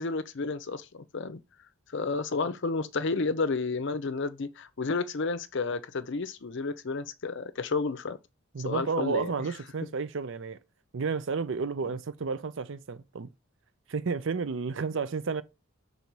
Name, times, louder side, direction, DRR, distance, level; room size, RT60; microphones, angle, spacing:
voice 1, 0.0-1.4 1.9-8.2 8.6-9.3, left 4 dB, 55° left, 0.6 m, -31 dB
voice 2, 8.5-10.6 10.9-13.3 13.9-15.4, right 5 dB, 60° right, 0.5 m, -31 dB
5.3 x 4.0 x 4.5 m
head